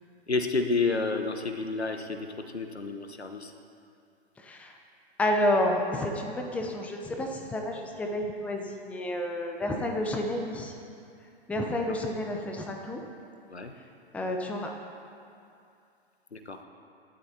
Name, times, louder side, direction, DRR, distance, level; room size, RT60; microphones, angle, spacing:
voice 1, 0.3-2.3 2.5-3.5 13.5-13.7 16.3-16.6, left 3 dB, 80° left, 6 dB, 1.3 m, -30 dB
voice 2, 4.4-4.8 5.2-10.7 11.5-13.0 14.1-14.7, left 1 dB, 5° left, 2 dB, 0.7 m, -30 dB
26.5 x 12.0 x 2.9 m, 2.5 s
figure-of-eight pair, 115°, 32 cm